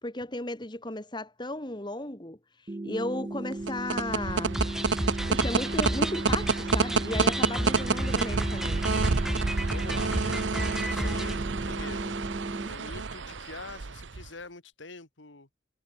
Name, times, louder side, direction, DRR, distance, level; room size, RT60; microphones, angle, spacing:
voice 1, 0.0-4.6 5.3-8.9, left 1 dB, 25° left, 2.0 m, -35 dB
sound 1, 2.7-12.7, right 2 dB, 25° right, 0.5 m, -36 dB
sound 2, 3.5-14.3, right 4 dB, 80° right, 0.8 m, -29 dB
sound 3, 4.5-11.4, equal, ahead, 1.1 m, -33 dB
voice 2, 7.7-8.0 9.7-12.2 12.5-15.5, left 3 dB, 80° left, 2.4 m, -45 dB
head